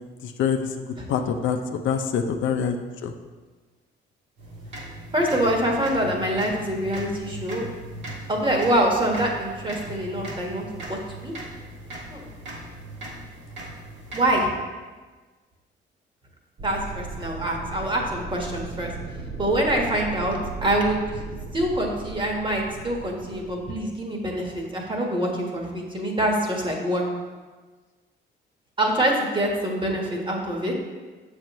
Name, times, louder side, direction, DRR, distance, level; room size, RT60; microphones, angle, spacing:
voice 1, 0.2-2.8 3.0-3.1, left 7 dB, 75° left, 6 dB, 0.6 m, -25 dB
sound 1, 4.4-14.5, right 1 dB, 70° right, 2.0 m, -38 dB
voice 2, 5.1-7.7 8.3-11.3 12.1-12.2 14.1-14.5 16.6-18.9 19.4-21.2 21.5-27.0 28.8-30.7, right 1 dB, 25° right, 0 dB, 1.4 m, -25 dB
sound 2, 16.6-23.8, right 3 dB, 50° right, 0.8 m, -37 dB
7.3 x 6.3 x 3.1 m, 1.4 s
cardioid pair, 90°, 20 cm